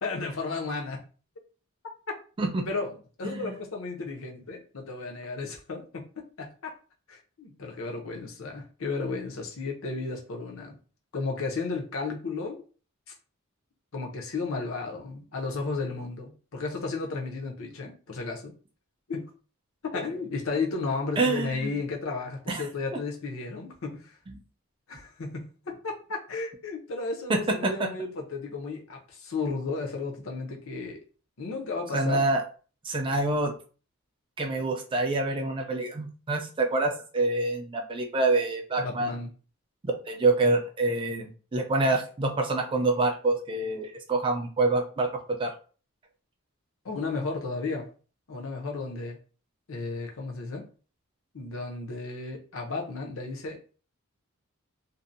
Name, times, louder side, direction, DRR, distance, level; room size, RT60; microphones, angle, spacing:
voice 1, 0.0-1.0 2.7-6.0 6.4-6.8 7.1-10.8 11.1-12.6 13.1-13.2 13.9-18.5 19.1-19.3 19.8-24.2 24.9-31.0 31.4-32.2 38.8-39.3 46.8-47.9 48.3-49.2 49.7-50.7 51.3-53.7, left 3 dB, 65° left, 0.6 m, -33 dB
voice 2, 21.2-21.7 22.5-22.6 24.3-24.4 27.3-27.9 31.9-32.4 32.8-33.5 34.4-39.2 39.8-45.5, right 2 dB, 25° right, 0.4 m, -26 dB
2.6 x 2.0 x 2.5 m
head